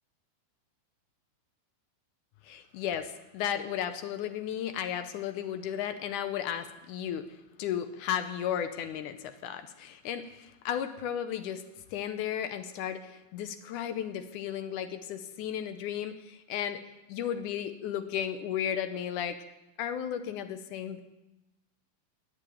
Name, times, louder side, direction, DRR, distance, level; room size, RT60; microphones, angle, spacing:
voice 1, 2.4-7.3 7.6-11.6 11.9-16.8 17.1-19.4 19.8-21.0, left 9 dB, 80° left, 9 dB, 1.9 m, -34 dB
18.0 x 6.9 x 9.9 m, 0.99 s
omnidirectional pair, 4.3 m